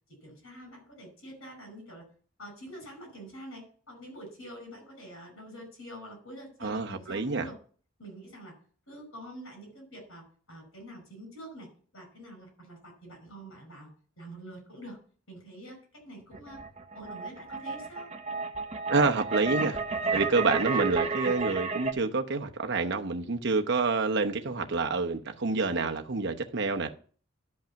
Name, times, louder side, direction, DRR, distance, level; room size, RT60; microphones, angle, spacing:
voice 1, 0.1-2.1 2.4-7.6 8.0-8.6 8.9-15.0 15.3-16.6 16.9-18.1, right 1 dB, 85° left, 5.5 m, -46 dB
voice 2, 6.6-7.5 18.9-19.8 20.1-26.9, right 3 dB, 60° right, 0.9 m, -28 dB
sound 1, 16.3-21.9, right 4 dB, 30° right, 0.9 m, -32 dB
12.0 x 5.5 x 5.8 m
head